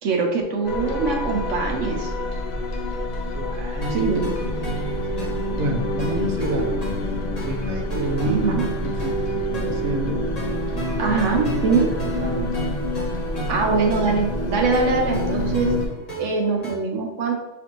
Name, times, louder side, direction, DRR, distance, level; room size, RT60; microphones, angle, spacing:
voice 1, 0.0-2.1 3.9-4.3 8.2-8.7 11.0-11.9 13.5-15.7 16.2-17.3, right 4 dB, 80° right, 2 dB, 1.1 m, -23 dB
sound 1, 0.6-15.9, left 1 dB, 55° left, 0.5 m, -27 dB
voice 2, 3.3-4.1 4.4-4.7 5.6-6.7 7.4-10.2 10.7-11.2 11.5-12.6, right 1 dB, 55° right, 2 dB, 0.8 m, -29 dB
sound 2, 3.8-16.7, right 3 dB, 35° left, 1.1 m, -36 dB
6.9 x 2.5 x 2.9 m, 1.1 s
omnidirectional pair, 1.3 m